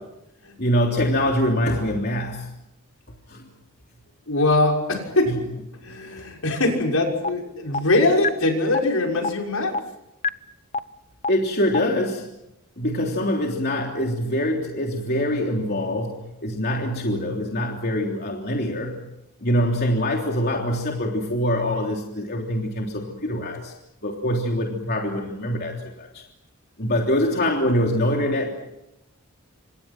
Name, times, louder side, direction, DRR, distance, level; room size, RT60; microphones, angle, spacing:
voice 1, 0.6-2.5 3.3-3.4 5.3-5.4 6.0-6.1 11.3-12.3 12.8-19.0 19.4-23.7 24.0-26.1 26.8-28.5, equal, 50° left, 0 dB, 3.3 m, -24 dB
voice 2, 4.3-5.4 5.8-9.8, left 2 dB, 80° left, 1 dB, 6.3 m, -22 dB
sound 1, 7.2-7.3 7.7-7.8 8.2-8.3 8.7-8.8 9.2-9.3 9.7-9.8 10.2-10.3 10.7-10.8 11.2-11.3 11.7-11.8, left 4 dB, 30° left, 0.8 m, -23 dB
29.0 x 26.5 x 6.1 m, 0.87 s
head